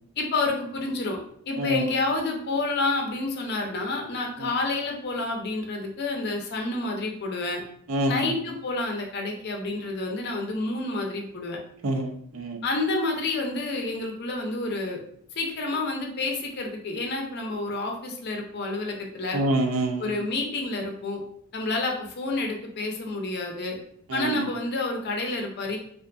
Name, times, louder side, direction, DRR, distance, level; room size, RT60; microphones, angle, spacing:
voice 1, 0.2-1.2 1.5-7.6 8.1-11.6 12.6-15.0 15.4-19.4 20.0-21.2 21.5-23.8 24.1-25.8, left 2 dB, 50° left, 2 dB, 0.5 m, -29 dB
voice 2, 7.9-8.3 11.8-12.6 19.3-20.1 24.1-24.5, right 1 dB, 70° right, 4 dB, 0.4 m, -26 dB
2.5 x 2.5 x 2.2 m, 0.65 s
head